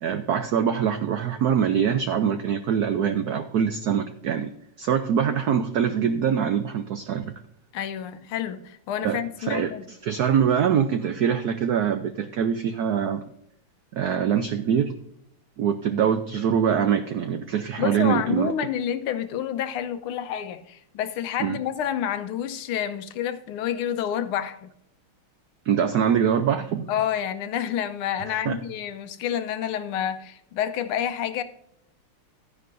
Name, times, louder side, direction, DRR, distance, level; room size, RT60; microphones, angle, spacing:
voice 1, 0.0-4.5 4.8-7.3 9.0-13.2 13.9-14.9 15.6-18.5 21.4-21.6 25.7-26.9 28.3-28.6, right 8 dB, 85° right, 0.8 m, -24 dB
voice 2, 7.7-9.8 17.8-24.7 26.9-31.4, left 9 dB, 85° left, 1.6 m, -29 dB
12.5 x 10.0 x 2.6 m
omnidirectional pair, 2.4 m